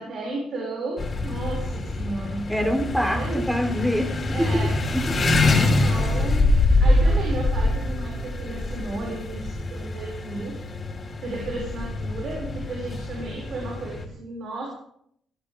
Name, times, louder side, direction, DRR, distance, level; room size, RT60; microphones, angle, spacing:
voice 1, 0.0-2.5 3.0-3.4 4.3-4.7 5.3-10.6 11.2-14.7, right 2 dB, 60° right, -1 dB, 6.5 m, -34 dB
sound 1, 1.0-14.1, left 2 dB, 35° left, 4.9 m, -24 dB
voice 2, 2.5-5.1, equal, ahead, 5 dB, 3.8 m, -25 dB
22.0 x 15.5 x 3.7 m, 0.65 s
cardioid pair, 90°, 0 cm